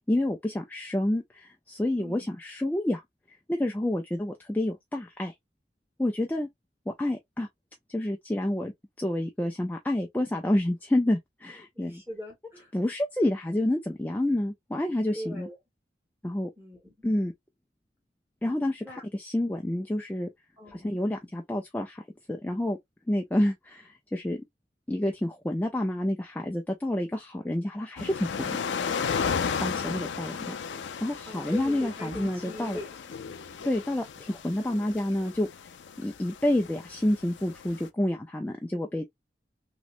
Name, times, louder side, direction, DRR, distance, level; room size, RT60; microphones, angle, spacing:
voice 1, 0.1-3.0 3.5-5.3 6.0-6.5 6.9-7.5 7.9-8.7 9.0-12.0 12.7-15.5 16.2-16.5 17.0-17.3 18.4-20.3 20.7-22.8 23.1-24.4 24.9-28.6 29.6-30.5 31.0-32.8 33.6-35.5 36.0-39.0, left 1 dB, 10° left, 0.4 m, -29 dB
voice 2, 1.9-2.3 11.7-12.7 15.1-15.6 16.6-16.9 18.8-19.0 20.6-21.0 31.3-33.4, left 1 dB, 10° right, 1.6 m, -41 dB
sound 1, 28.0-37.9, left 6 dB, 85° left, 0.4 m, -34 dB
3.1 x 3.0 x 2.5 m
head